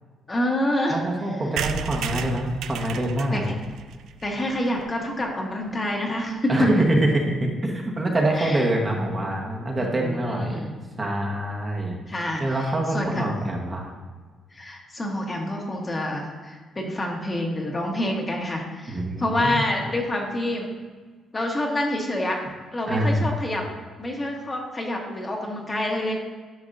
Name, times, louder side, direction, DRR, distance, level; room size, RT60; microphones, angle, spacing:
voice 1, 0.3-1.0 3.3-3.5 4.2-6.7 8.3-8.7 8.9-9.2 9.8-10.7 12.1-12.6 12.9-13.3 14.5-20.7 21.3-22.4 22.7-23.6 24.0-26.1, left 1 dB, 25° left, 0 dB, 1.3 m, -27 dB
voice 2, 0.9-3.5 6.5-10.7 11.0-13.9 18.9-19.6 22.9-23.3, right 1 dB, 30° right, -1 dB, 1.3 m, -25 dB
sound 1, 1.6-5.2 5.7-5.8 6.0-6.1 6.3-6.4 6.6-6.8, right 7 dB, 85° right, 0.4 m, -33 dB
10.5 x 5.2 x 2.6 m, 1.5 s
cardioid pair, 90°, 0 cm